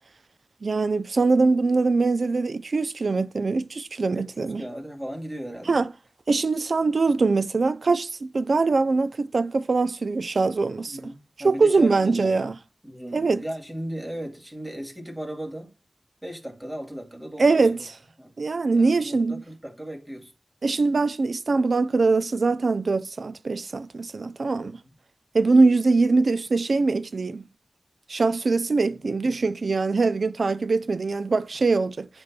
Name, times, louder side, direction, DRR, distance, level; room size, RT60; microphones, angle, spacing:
voice 1, 0.6-4.6 5.7-5.9 6.3-11.0 11.4-12.5 13.1-13.4 17.4-17.8 18.4-19.4 20.6-24.8 25.3-27.4 28.1-32.1, right 3 dB, 75° right, 0.4 m, -22 dB
voice 2, 4.1-5.8 10.8-12.5 12.8-15.7 16.2-17.9 18.2-18.3 18.7-20.3 24.8-24.9 28.8-29.0, right 1 dB, 15° right, 2.4 m, -37 dB
11.0 x 4.5 x 2.2 m
wide cardioid pair, 65°, 0 cm